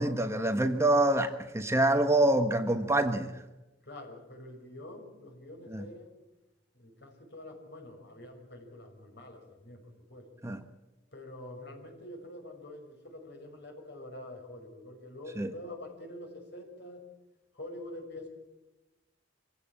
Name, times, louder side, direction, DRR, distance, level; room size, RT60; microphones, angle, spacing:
voice 1, 0.0-3.4 5.7-5.8 10.4-10.6 15.4-15.5, right 1 dB, 15° right, 1.2 m, -26 dB
voice 2, 3.8-6.2 6.7-9.8 10.1-10.3 11.1-17.0 17.5-18.3, left 1 dB, 60° left, 5.8 m, -46 dB
26.0 x 16.0 x 8.9 m
head